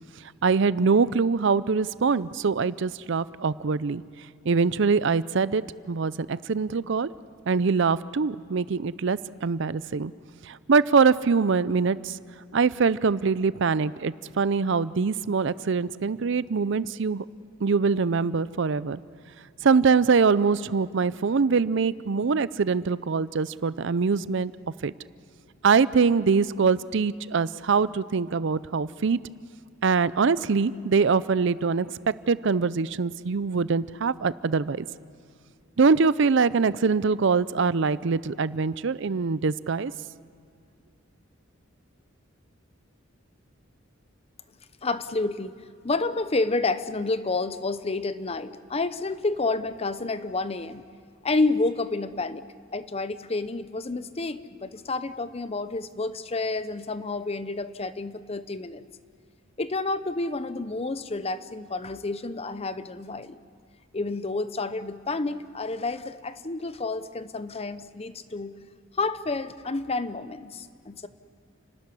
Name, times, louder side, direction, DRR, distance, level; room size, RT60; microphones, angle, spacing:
voice 1, 0.2-4.0 4.4-7.1 7.5-10.1 10.4-12.2 12.5-17.3 17.6-19.0 19.6-24.5 24.8-24.9 25.6-29.2 29.8-31.9 32.3-34.9 35.8-39.9, right 5 dB, 65° right, 17 dB, 0.5 m, -23 dB
voice 2, 44.8-45.5 45.8-50.8 51.2-52.5 52.7-58.8 59.6-63.4 63.9-68.5 68.9-71.1, left 3 dB, 30° left, 13 dB, 0.7 m, -29 dB
30.0 x 13.0 x 9.8 m, 2.3 s
head